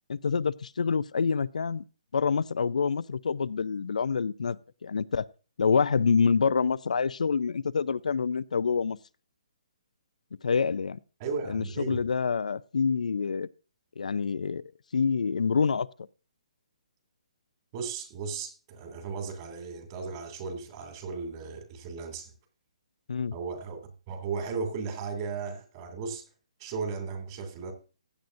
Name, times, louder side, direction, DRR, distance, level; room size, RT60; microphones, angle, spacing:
voice 1, 0.1-1.8 2.1-5.3 5.6-9.0 10.4-11.0 11.5-13.5 14.0-15.9 23.1-23.3, left 5 dB, 85° left, 0.4 m, -27 dB
voice 2, 11.2-12.0 17.7-22.3 23.3-26.2 26.6-27.7, right 5 dB, 35° right, 2.5 m, -36 dB
15.5 x 8.9 x 2.6 m
hypercardioid pair, 155°, 4 cm